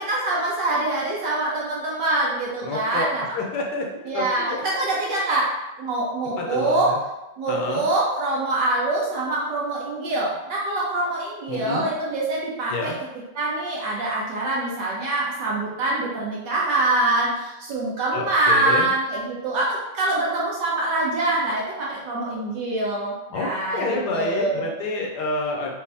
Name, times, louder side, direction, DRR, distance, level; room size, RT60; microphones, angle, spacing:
voice 1, 0.0-3.2 4.1-5.5 5.8-6.9 7.4-12.9 13.4-24.7, right 2 dB, 70° right, -5 dB, 1.5 m, -24 dB
voice 2, 2.6-3.1 3.3-3.9 4.1-4.3 6.4-7.0 7.5-7.8 11.5-11.9 12.7-13.0 18.1-18.9 23.3-25.7, left 2 dB, 70° left, 0 dB, 1.2 m, -28 dB
4.7 x 2.6 x 3.4 m, 0.97 s
omnidirectional pair, 2.0 m